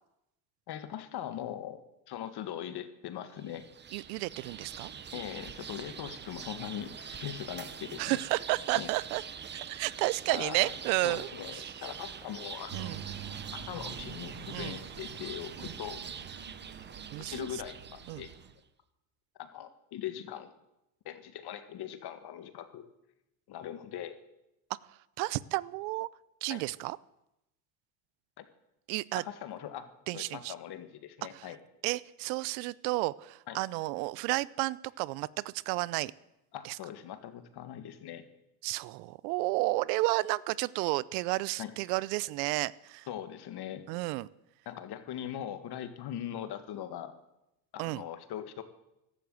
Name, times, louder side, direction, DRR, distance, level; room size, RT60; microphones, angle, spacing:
voice 1, 0.7-1.8 2.1-3.7 5.1-8.2 8.7-8.9 10.3-10.7 11.0-13.0 13.5-16.0 16.3-16.4 17.2-18.3 19.4-20.5 21.0-22.9 23.5-24.1 26.5-26.6 28.4-28.5 29.1-29.9 30.1-31.6 33.5-33.6 36.5-38.2 41.6-41.7 43.1-43.8 44.6-47.1 47.7-48.6, left 10 dB, 50° left, 10 dB, 1.8 m, -41 dB
sound 1, 3.4-18.5, right 7 dB, 20° right, 0.8 m, -44 dB
voice 2, 3.9-4.9 8.0-9.2 9.5-11.7 12.7-13.0 14.5-14.8 15.6-15.7 17.1-17.6 18.1-18.2 24.9-26.1 26.4-27.0 28.9-29.2 30.1-30.5 31.3-31.5 31.8-36.1 36.6-36.8 38.6-43.1 43.9-44.3 47.8-48.0, right 21 dB, 80° right, 21 dB, 0.7 m, -32 dB
sound 2, 12.7-18.5, right 8 dB, 55° right, 2.0 m, -46 dB
14.5 x 12.0 x 7.8 m, 0.88 s
supercardioid pair, 105°, 49 cm